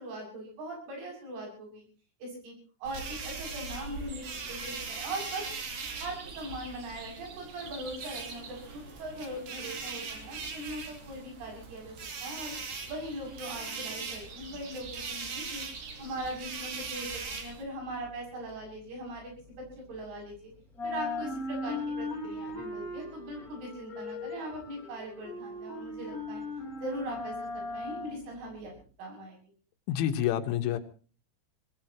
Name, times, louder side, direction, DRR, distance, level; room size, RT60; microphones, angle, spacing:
voice 1, 0.0-1.9 2.2-2.5 2.8-5.5 6.0-11.9 12.2-12.5 12.9-20.3 20.8-26.4 26.8-29.4, right 1 dB, 80° right, 1 dB, 9.9 m, -40 dB
sound 1, 2.9-17.6, right 4 dB, 50° right, 4.4 m, -40 dB
sound 2, 17.5-20.4 20.7-28.8, left 2 dB, 15° left, 6.3 m, -39 dB
voice 2, 29.9-30.8, left 11 dB, 80° left, 8 dB, 3.8 m, -28 dB
24.5 x 19.5 x 3.0 m, 0.38 s
omnidirectional pair, 5.5 m